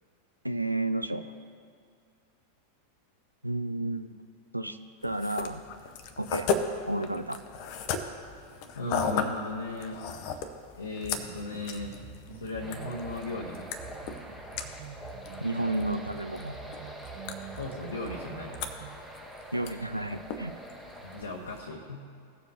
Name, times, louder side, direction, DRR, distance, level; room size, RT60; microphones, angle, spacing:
voice 1, 0.4-1.2 3.4-4.2 4.5-4.8 5.0-5.6 6.2-6.5 6.9-7.4 15.4-16.6 19.5-20.5, right 1 dB, 85° right, 9 dB, 0.4 m, -31 dB
sound 1, 5.0-21.6, left 5 dB, 45° left, 0.7 m, -37 dB
voice 2, 8.7-10.0 10.8-12.0 12.4-13.7 17.5-18.7 21.0-22.0, left 2 dB, 70° left, -2 dB, 1.0 m, -36 dB
sound 2, 11.0-19.1, right 8 dB, 45° right, 0.8 m, -47 dB
sound 3, 12.6-21.2, equal, 5° left, 1.3 m, -45 dB
17.0 x 7.0 x 2.8 m, 2.3 s
figure-of-eight pair, 90°, 0 cm